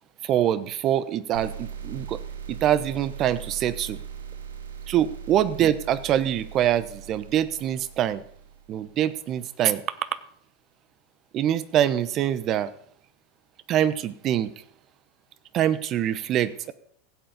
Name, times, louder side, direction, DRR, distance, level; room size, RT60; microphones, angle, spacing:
voice 1, 0.2-2.2 2.5-4.0 4.9-8.2 8.7-9.8 11.3-12.7 13.7-14.5 15.5-16.7, right 11 dB, 40° right, 16 dB, 0.9 m, -24 dB
sound 1, 1.3-8.9, right 8 dB, 85° right, 1.3 m, -39 dB
16.0 x 7.9 x 5.2 m, 0.63 s
hypercardioid pair, 100°, 0 cm